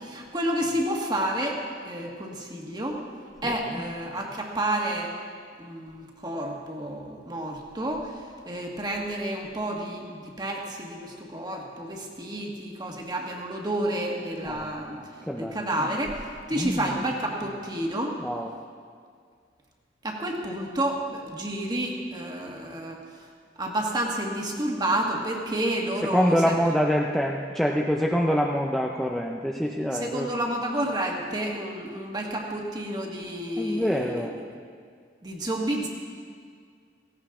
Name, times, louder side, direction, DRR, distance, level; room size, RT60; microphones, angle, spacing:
voice 1, 0.0-1.6 1.8-3.0 3.4-5.1 5.6-8.1 8.4-15.1 15.4-16.2 16.5-18.2 20.0-23.0 23.6-26.6 29.9-34.3 35.2-35.9, right 1 dB, 25° right, 0 dB, 1.7 m, -30 dB
voice 2, 15.3-15.6 16.5-16.8 18.2-18.5 26.0-30.3 33.6-34.4, equal, ahead, -1 dB, 0.6 m, -25 dB
17.0 x 16.0 x 3.8 m, 2.1 s
head